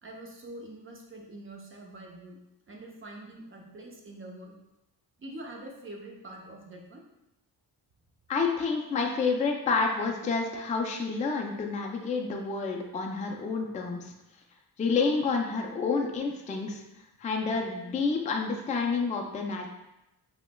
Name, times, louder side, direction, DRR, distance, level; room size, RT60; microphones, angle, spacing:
voice 1, 0.0-2.4 2.7-4.5 5.2-7.0 15.2-15.4 17.5-17.6, right 1 dB, 30° right, 0 dB, 0.7 m, -45 dB
voice 2, 8.3-14.1 14.8-16.8 17.2-19.7, left 4 dB, 20° left, 2 dB, 0.3 m, -29 dB
5.4 x 2.1 x 2.2 m, 0.92 s
cardioid pair, 95°, 41 cm